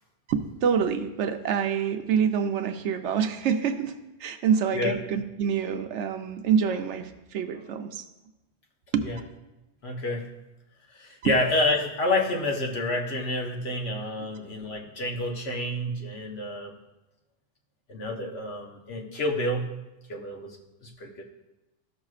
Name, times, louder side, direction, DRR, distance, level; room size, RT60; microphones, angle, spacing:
voice 1, 0.3-8.0 8.9-9.1 11.2-11.4 14.2-14.3, right 7 dB, 75° right, 7 dB, 0.9 m, -26 dB
voice 2, 9.8-10.3 10.9-16.8 17.9-19.7 20.1-20.6 20.8-21.2, left 1 dB, 60° left, 1 dB, 1.2 m, -29 dB
13.5 x 6.1 x 2.4 m, 1.0 s
omnidirectional pair, 1.2 m